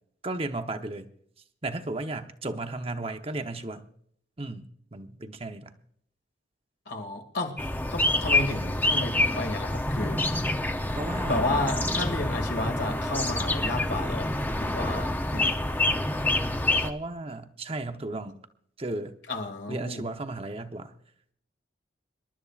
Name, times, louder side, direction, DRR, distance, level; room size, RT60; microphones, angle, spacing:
voice 1, 0.2-1.1 1.6-3.9 4.4-5.7 10.0-10.1 11.0-11.6 16.8-18.4 18.8-19.2 19.7-20.9, right 2 dB, 30° right, 7 dB, 0.9 m, -34 dB
voice 2, 6.9-10.2 11.2-14.3 14.6-15.6 19.3-20.0, left 2 dB, 60° left, 3 dB, 2.3 m, -32 dB
sound 1, 7.6-16.9, left 2 dB, 10° left, 0.7 m, -27 dB
27.0 x 12.0 x 2.5 m, 0.65 s
head